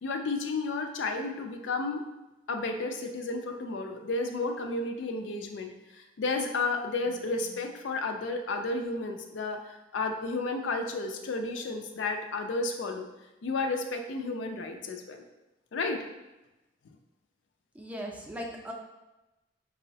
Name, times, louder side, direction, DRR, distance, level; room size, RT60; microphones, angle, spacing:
voice 1, 0.0-2.0 2.5-5.7 6.2-13.1 13.4-15.2 15.7-16.0, left 3 dB, 75° left, 4 dB, 0.4 m, -32 dB
voice 2, 17.7-18.7, equal, 10° right, -1 dB, 0.4 m, -38 dB
5.3 x 2.0 x 2.7 m, 1.0 s
head